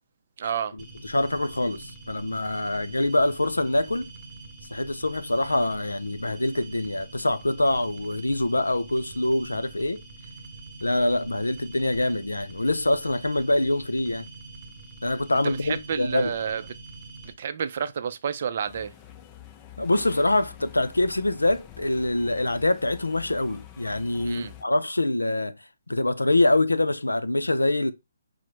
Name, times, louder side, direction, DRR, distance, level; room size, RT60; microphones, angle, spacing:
voice 1, 0.4-0.7 15.4-16.7 17.2-18.9 24.2-24.5, right 7 dB, 50° right, 0.4 m, -30 dB
sound 1, 0.8-17.3, right 3 dB, 20° right, 1.0 m, -45 dB
voice 2, 1.0-4.1 4.7-10.0 10.8-14.3 15.0-16.3 19.8-25.6 25.9-27.9, left 2 dB, 85° left, 0.4 m, -25 dB
sound 2, 18.6-24.6, left 10 dB, 20° left, 0.4 m, -47 dB
4.8 x 2.0 x 4.5 m
figure-of-eight pair, 140°, 0 cm